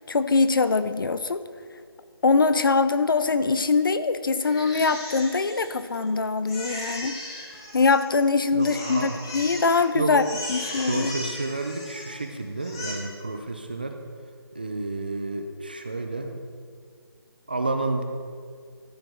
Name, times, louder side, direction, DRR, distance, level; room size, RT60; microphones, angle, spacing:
voice 1, 0.0-1.4 2.2-7.2 7.7-10.2 10.5-11.1, left 4 dB, 60° left, 12 dB, 0.6 m, -23 dB
Crying sobbing, 4.4-6.1 6.5-8.3 8.6-9.8 10.1-12.2 12.6-12.9, left 1 dB, 10° left, 0.7 m, -37 dB
voice 2, 8.5-9.2 9.9-10.2 10.9-14.0 14.5-16.4 17.5-18.0, right 2 dB, 20° right, 5 dB, 0.4 m, -30 dB
13.5 x 5.0 x 5.9 m, 2.1 s
hypercardioid pair, 175°, 13 cm